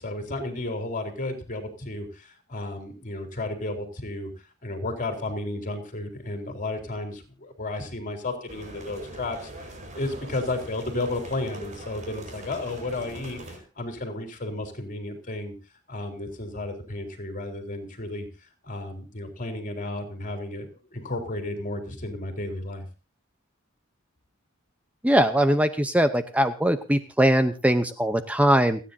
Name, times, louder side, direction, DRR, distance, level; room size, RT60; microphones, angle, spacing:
voice 1, 0.0-4.3 4.6-15.5 15.9-22.9, left 2 dB, 40° left, 6 dB, 4.2 m, -33 dB
sound 1, 8.5-13.6, right 1 dB, 40° right, 4.6 m, -42 dB
voice 2, 25.0-28.8, right 1 dB, 5° right, 9 dB, 0.8 m, -21 dB
30.0 x 10.0 x 2.7 m, 0.32 s
head